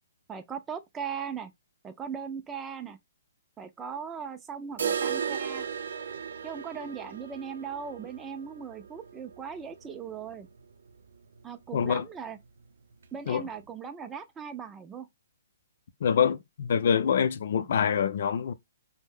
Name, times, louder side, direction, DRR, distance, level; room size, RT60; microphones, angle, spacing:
voice 1, 0.3-1.5 1.8-3.0 3.6-5.7 6.4-10.5 11.4-12.4 13.1-15.1 17.6-17.7, right 7 dB, 15° right, 0.4 m, -38 dB
sound 1, 4.8-10.6 10.9-11.0 11.4-11.5 12.0-12.1 12.9-13.0, right 7 dB, 70° right, 0.5 m, -35 dB
voice 2, 11.7-12.0 13.3-13.4 16.0-18.5, left 7 dB, 60° left, 0.5 m, -25 dB
2.6 x 2.1 x 3.6 m
hypercardioid pair, 145°, 0 cm